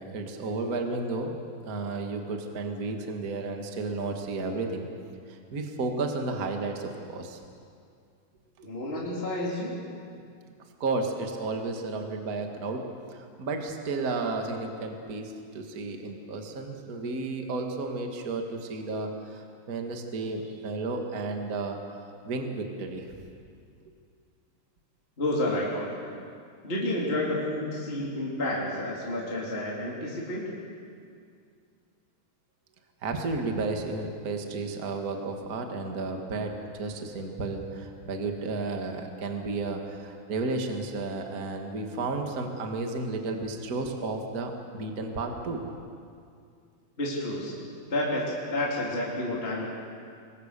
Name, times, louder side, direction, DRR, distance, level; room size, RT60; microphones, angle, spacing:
voice 1, 0.0-1.4 1.7-4.9 5.3-7.4 8.6-8.7 10.8-23.1 33.0-45.7, right 3 dB, 30° right, 3 dB, 1.9 m, -32 dB
voice 2, 8.6-9.8 25.2-26.0 26.6-30.5 47.0-47.5 47.9-49.6, left 1 dB, 15° left, -5 dB, 3.4 m, -30 dB
27.0 x 22.5 x 6.9 m, 2.3 s
omnidirectional pair, 3.9 m